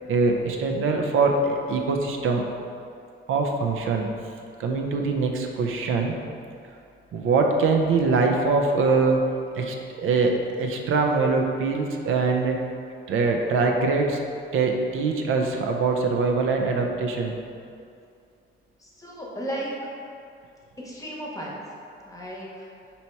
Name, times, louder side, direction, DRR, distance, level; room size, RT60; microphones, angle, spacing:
voice 1, 0.1-2.4 3.3-4.1 4.6-6.1 7.1-9.2 9.5-12.6 13.1-14.2 14.5-17.4, right 4 dB, 85° right, 2 dB, 0.5 m, -23 dB
voice 2, 18.8-19.7 20.8-21.6 22.1-22.7, right 1 dB, 15° left, -4 dB, 0.8 m, -35 dB
4.3 x 2.8 x 4.5 m, 2.4 s
cardioid pair, 120°, 21 cm